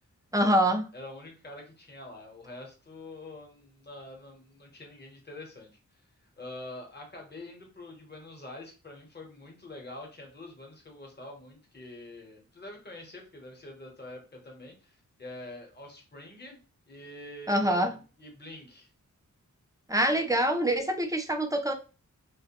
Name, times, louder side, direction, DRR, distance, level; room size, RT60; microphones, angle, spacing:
voice 1, 0.3-0.8 17.5-17.9 19.9-21.7, right 1 dB, 10° right, 6 dB, 0.3 m, -25 dB
voice 2, 0.9-16.6 16.9-18.9, left 1 dB, 30° left, 2 dB, 0.9 m, -45 dB
2.4 x 2.1 x 2.8 m, 0.33 s
wide cardioid pair, 105°, 32 cm